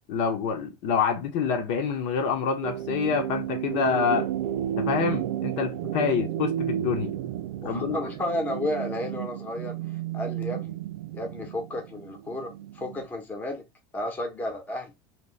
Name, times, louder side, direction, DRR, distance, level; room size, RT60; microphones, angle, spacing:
voice 1, 0.1-4.3 4.8-7.1 7.6-8.0, left 6 dB, 55° left, 0.9 m, -27 dB
sound 1, 2.6-13.1, right 11 dB, 85° right, 0.5 m, -32 dB
voice 2, 7.6-9.8 10.1-10.8 11.1-13.6 13.9-14.9, left 1 dB, 15° left, 1.0 m, -32 dB
3.2 x 2.9 x 3.2 m
supercardioid pair, 150°, 13 cm